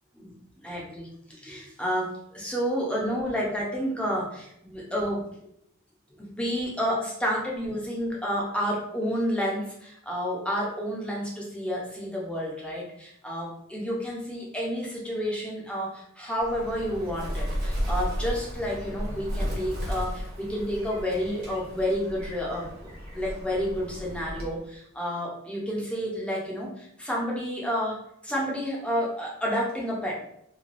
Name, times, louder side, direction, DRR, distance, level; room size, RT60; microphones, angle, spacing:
voice 1, 0.6-5.3 6.2-22.7 23.1-30.2, equal, 5° left, -4 dB, 0.6 m, -30 dB
Bird, 16.4-24.7, equal, 45° right, 0.9 m, -34 dB
3.1 x 2.2 x 2.5 m, 0.73 s
head